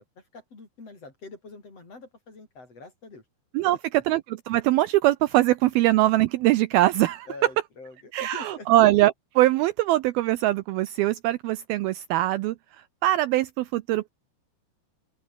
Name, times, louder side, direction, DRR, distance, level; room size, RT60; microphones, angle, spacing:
voice 1, 0.0-3.3 3.6-3.8 7.3-8.7, left 3 dB, 35° left, 6.8 m, -45 dB
voice 2, 4.1-7.3 8.1-12.6 13.0-14.1, right 16 dB, 80° right, 2.3 m, -22 dB
open air
omnidirectional pair, 4.8 m